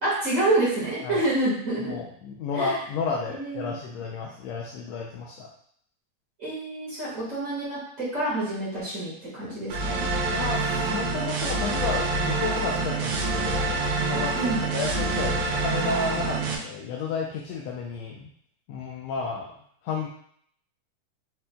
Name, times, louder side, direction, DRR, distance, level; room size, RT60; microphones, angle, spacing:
voice 1, 0.0-1.9 2.5-2.8 3.3-3.7 6.4-10.0 14.3-14.6, right 2 dB, 35° right, -8 dB, 1.6 m, -27 dB
voice 2, 1.8-5.5 10.3-18.3 18.7-19.5 19.8-20.1, left 4 dB, 85° left, -1 dB, 1.5 m, -32 dB
sound 1, 9.7-16.6, right 3 dB, 80° right, 2.2 m, -26 dB
5.1 x 4.4 x 2.2 m, 0.64 s
omnidirectional pair, 3.6 m